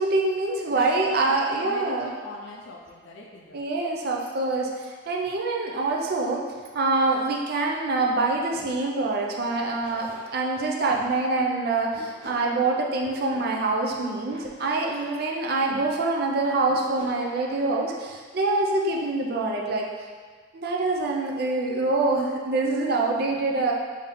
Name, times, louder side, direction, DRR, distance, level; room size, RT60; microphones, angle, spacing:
voice 1, 0.0-2.1 3.5-6.4 6.7-19.9 20.5-23.7, right 3 dB, 50° right, 0 dB, 0.4 m, -25 dB
voice 2, 0.7-3.6, left 1 dB, 70° left, -3 dB, 0.5 m, -41 dB
sound 1, 8.5-8.7 9.5-11.1 11.9-13.4 14.3-15.8 16.7-18.0, left 1 dB, 65° right, 1.1 m, -46 dB
3.4 x 2.7 x 3.7 m, 1.5 s
head